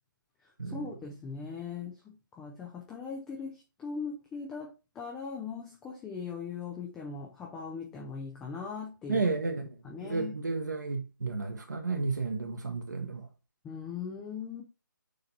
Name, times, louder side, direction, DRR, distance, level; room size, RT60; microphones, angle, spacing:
voice 1, 0.6-9.3 9.8-10.3 13.6-14.6, left 5 dB, 5° left, 0.5 m, -40 dB
voice 2, 9.1-9.7 10.0-13.3, right 4 dB, 60° right, 1.2 m, -32 dB
6.7 x 3.9 x 4.1 m
figure-of-eight pair, 150°, 11 cm